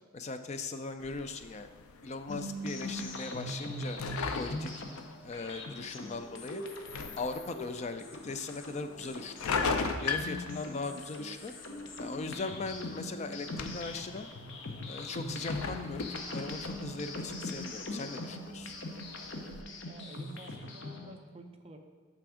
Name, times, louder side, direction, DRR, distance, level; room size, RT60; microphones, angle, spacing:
voice 1, 0.1-1.7 2.0-4.0 4.4-4.8 5.2-6.6 7.2-9.6 10.0-11.5 12.0-14.3 14.9-18.7, left 3 dB, 30° left, 9 dB, 0.3 m, -39 dB
Fridge - Open and Close, 1.0-19.6, left 4 dB, 90° left, 0.5 m, -41 dB
sound 1, 2.3-21.2, left 1 dB, 55° left, 0.7 m, -41 dB
voice 2, 19.8-21.8, right 1 dB, 30° right, 4 dB, 0.6 m, -50 dB
6.0 x 5.9 x 4.9 m, 1.5 s
head